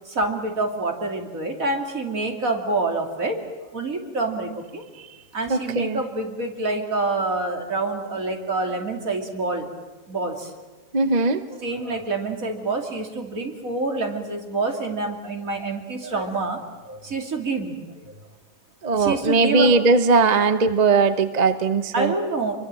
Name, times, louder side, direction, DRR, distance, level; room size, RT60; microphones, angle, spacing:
voice 1, 0.1-4.8 5.3-9.7 10.1-10.5 11.2-18.1 18.9-19.8 21.9-22.5, right 3 dB, 75° right, 3 dB, 3.2 m, -27 dB
voice 2, 5.5-6.0 10.9-11.4 18.8-22.1, right 4 dB, 35° right, 10 dB, 1.0 m, -19 dB
26.5 x 23.5 x 7.6 m, 1.2 s
omnidirectional pair, 1.5 m